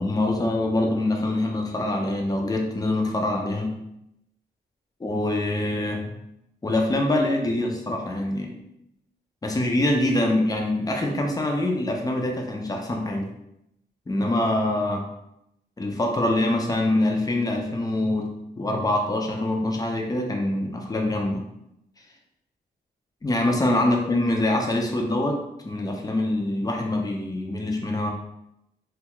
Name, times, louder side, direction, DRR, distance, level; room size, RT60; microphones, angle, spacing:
voice 1, 0.0-3.7 5.0-6.1 6.6-8.5 9.4-13.3 14.1-15.1 15.8-18.3 18.6-21.4 23.2-25.4 25.6-28.1, left 1 dB, 20° left, 1 dB, 0.5 m, -24 dB
2.6 x 2.3 x 3.0 m, 0.83 s
wide cardioid pair, 110°, 18 cm